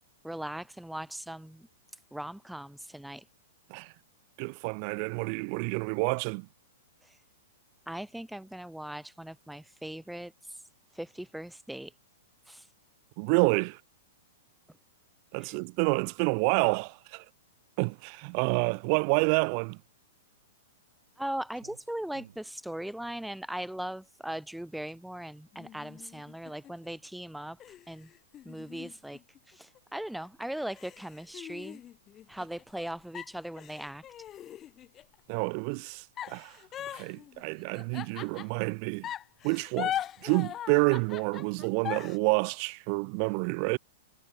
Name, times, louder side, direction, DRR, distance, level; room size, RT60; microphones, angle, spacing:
voice 1, 0.2-1.7 2.1-3.2 7.0-7.2 7.9-10.6 10.9-11.9 12.5-12.7 15.4-15.6 21.2-28.1 28.4-29.2 29.5-31.8 32.3-34.0, right 1 dB, ahead, 0.9 m, -39 dB
voice 2, 4.4-6.5 13.2-13.8 15.3-17.2 17.8-19.8 35.3-36.6 36.9-39.1 39.4-39.9 40.2-43.8, right 40 dB or more, 40° right, 0.7 m, -28 dB
Clock, 21.5-28.9, right 9 dB, 60° right, 5.4 m, -62 dB
sound 1, 25.5-26.9 27.6-29.8 30.2-30.3 30.7-32.8 33.1-35.1 36.2-38.7 39.0-42.2, left 11 dB, 25° left, 1.1 m, -40 dB
figure-of-eight pair, 105°, 0 cm